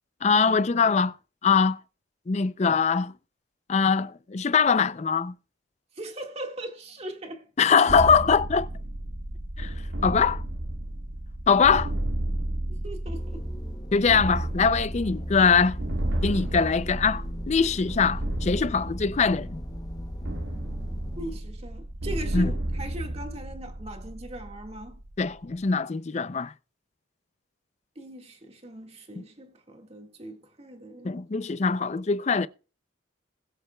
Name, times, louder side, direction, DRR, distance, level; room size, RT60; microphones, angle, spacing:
voice 1, 0.2-1.1 1.4-1.8 2.3-3.1 3.7-5.3 7.6-8.7 9.6-9.7 10.0-10.4 11.5-11.9 13.9-15.8 16.2-19.6 22.3-22.5 25.2-26.5 29.2-29.3 31.0-32.5, left 5 dB, 35° left, 0.4 m, -22 dB
voice 2, 5.9-7.5 12.8-13.5 13.9-14.0 21.2-25.0 27.9-31.2, right 1 dB, 35° right, 1.8 m, -40 dB
sound 1, 7.9-25.6, right 1 dB, 75° right, 1.2 m, -33 dB
sound 2, 13.1-21.4, equal, 20° left, 0.8 m, -39 dB
20.5 x 7.8 x 2.3 m
head